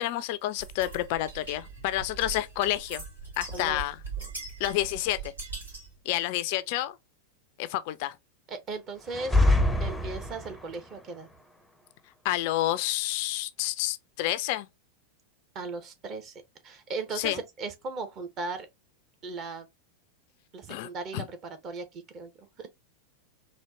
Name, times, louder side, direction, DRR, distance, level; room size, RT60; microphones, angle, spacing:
voice 1, 0.0-3.0 3.4-4.0 4.6-5.3 6.1-7.0 7.6-8.2 12.2-14.7 17.2-17.4 20.7-21.2, left 14 dB, 45° left, 0.4 m, -29 dB
sound 1, 0.6-6.0, right 4 dB, 75° right, 2.7 m, -41 dB
voice 2, 3.5-3.8 8.5-11.3 15.5-18.7 19.2-19.7 20.5-22.7, right 3 dB, 30° right, 1.0 m, -37 dB
sound 2, 9.1-10.7, left 2 dB, ahead, 0.6 m, -24 dB
4.3 x 2.7 x 2.8 m
figure-of-eight pair, 90°, 0 cm